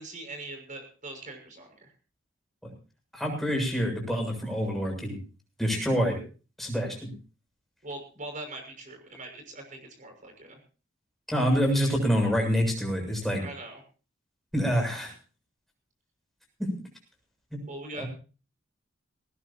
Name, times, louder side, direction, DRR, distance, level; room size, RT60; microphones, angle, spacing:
voice 1, 0.0-1.9 7.8-10.6 13.4-13.8 17.7-18.0, right 2 dB, 40° right, 4 dB, 6.2 m, -42 dB
voice 2, 3.1-5.2 5.6-6.2 6.6-7.1 11.3-13.4 14.5-15.1 16.6-16.7 17.5-17.6 18.0-18.1, equal, ahead, 0 dB, 7.3 m, -26 dB
19.5 x 19.0 x 2.9 m, 0.36 s
head